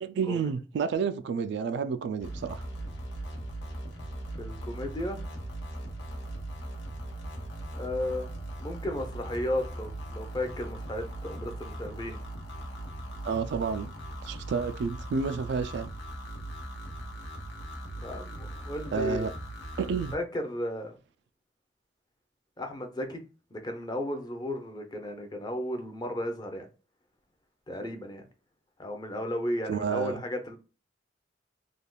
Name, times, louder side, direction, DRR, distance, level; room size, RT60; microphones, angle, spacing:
voice 1, 0.0-2.7 13.2-13.9 14.2-15.9 18.9-19.3 19.8-20.1 29.7-30.2, right 5 dB, 70° right, 0.3 m, -30 dB
sound 1, 2.2-20.2, right 1 dB, 85° left, 0.9 m, -39 dB
voice 2, 4.4-5.2 7.7-8.3 8.6-12.2 18.0-19.3 20.1-20.9 22.6-23.2 23.5-26.7 27.7-28.2 28.8-30.6, left 1 dB, 25° left, 0.6 m, -34 dB
3.4 x 2.3 x 2.2 m
head